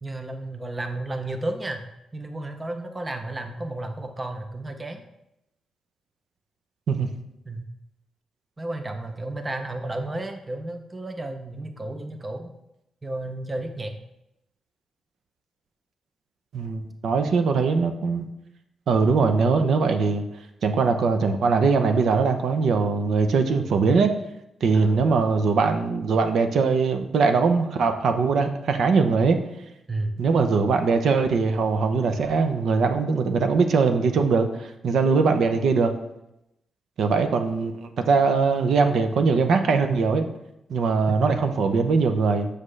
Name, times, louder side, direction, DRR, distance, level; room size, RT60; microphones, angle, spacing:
voice 1, 0.0-1.8 2.1-5.0 7.5-7.7 8.6-12.5 13.0-13.9 24.7-25.3 29.9-30.2 41.1-41.3, right 2 dB, 15° right, 6 dB, 0.5 m, -32 dB
voice 2, 16.5-18.3 18.9-20.2 20.6-24.1 24.6-29.4 30.2-35.9 37.0-40.3 40.7-42.5, right 4 dB, 65° right, 7 dB, 0.6 m, -21 dB
7.5 x 6.5 x 3.2 m, 0.85 s
wide cardioid pair, 165°, 0 cm